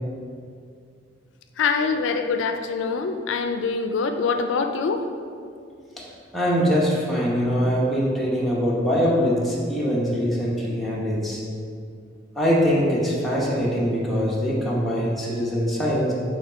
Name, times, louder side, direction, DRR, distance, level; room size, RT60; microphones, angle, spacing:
voice 1, 1.6-5.0, left 5 dB, 85° left, 6 dB, 0.4 m, -24 dB
voice 2, 6.3-11.4 12.4-16.1, equal, ahead, -6 dB, 1.0 m, -23 dB
6.4 x 3.2 x 4.9 m, 2.3 s
head